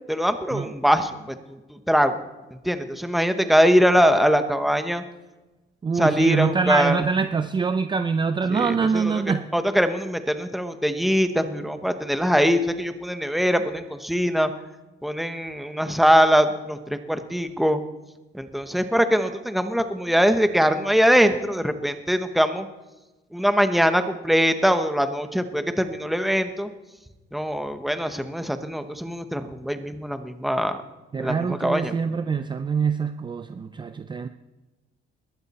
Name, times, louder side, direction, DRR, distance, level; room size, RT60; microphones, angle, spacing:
voice 1, 0.1-2.2 2.6-5.0 5.9-7.0 8.5-9.2 9.5-14.5 15.0-17.8 18.3-22.7 23.3-26.7 27.3-30.8 31.2-31.9, equal, ahead, 8 dB, 1.0 m, -22 dB
voice 2, 5.8-9.5 31.1-34.3, right 5 dB, 25° right, 10 dB, 0.5 m, -24 dB
20.5 x 15.0 x 4.2 m, 1.1 s
cardioid pair, 160°, 20 cm